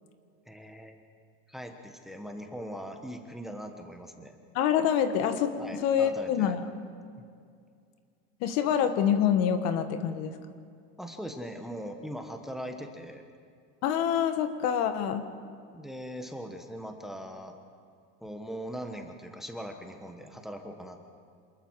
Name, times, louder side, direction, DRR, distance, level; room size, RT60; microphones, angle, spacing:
voice 1, 0.4-1.0 1.5-4.3 5.6-6.7 11.0-13.2 15.7-17.6 18.2-21.0, equal, ahead, 4 dB, 1.2 m, -40 dB
voice 2, 4.5-5.5 5.8-6.6 8.4-10.3 13.8-15.2, left 8 dB, 55° left, 8 dB, 1.5 m, -26 dB
27.5 x 20.5 x 4.8 m, 2.3 s
supercardioid pair, 150°, 30 cm